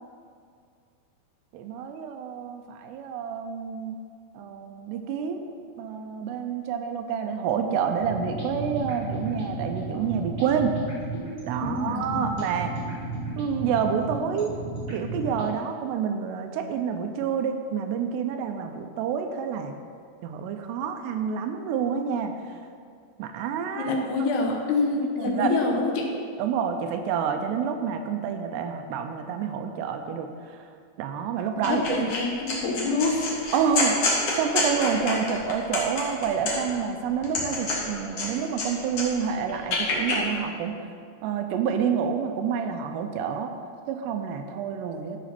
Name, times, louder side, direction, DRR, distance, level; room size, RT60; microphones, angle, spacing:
voice 1, 1.5-4.0 4.3-5.5 5.8-10.7 11.5-12.7 13.4-14.5 14.9-19.7 20.2-22.3 23.2-23.9 25.2-25.5 26.4-30.7 31.0-32.1 33.5-40.7 41.2-43.5 43.9-45.2, right 7 dB, 80° right, 5 dB, 2.6 m, -28 dB
sound 1, 7.9-15.5, right 2 dB, 20° right, 1.9 m, -34 dB
voice 2, 11.6-12.2 23.8-26.1 31.6-33.3, left 3 dB, 75° left, 1 dB, 2.9 m, -26 dB
sound 2, 31.6-32.2 32.5-36.8 37.2-38.7 38.9-40.2, left 3 dB, 55° left, 1.6 m, -27 dB
12.5 x 5.0 x 5.8 m, 2.2 s
omnidirectional pair, 5.1 m